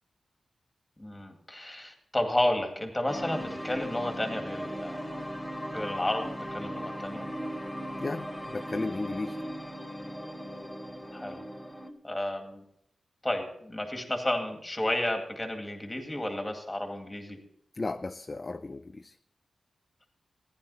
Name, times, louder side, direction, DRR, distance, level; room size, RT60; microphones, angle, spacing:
voice 1, 1.0-5.0 5.7-7.3 11.1-11.4 12.0-12.6 13.2-17.4, left 1 dB, 15° left, 4 dB, 2.1 m, -32 dB
sound 1, 3.1-11.9, equal, 5° right, 1.0 m, -38 dB
voice 2, 8.0-9.4 17.7-19.2, left 3 dB, 30° left, 9 dB, 0.4 m, -34 dB
15.0 x 10.5 x 4.2 m, 0.71 s
wide cardioid pair, 120°, 0 cm